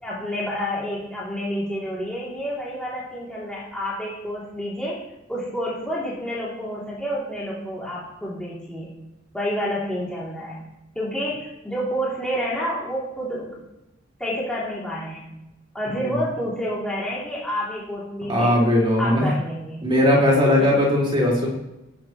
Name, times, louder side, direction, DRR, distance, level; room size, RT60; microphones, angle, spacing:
voice 1, 0.0-5.0 5.3-8.9 9.3-10.6 10.9-13.5 14.2-15.3 15.7-18.5 19.0-19.8 20.6-20.7, equal, 5° left, -8 dB, 2.8 m, -29 dB
voice 2, 18.3-19.3 19.8-21.5, left 1 dB, 25° right, -5 dB, 4.4 m, -19 dB
19.0 x 8.4 x 3.1 m, 0.94 s
head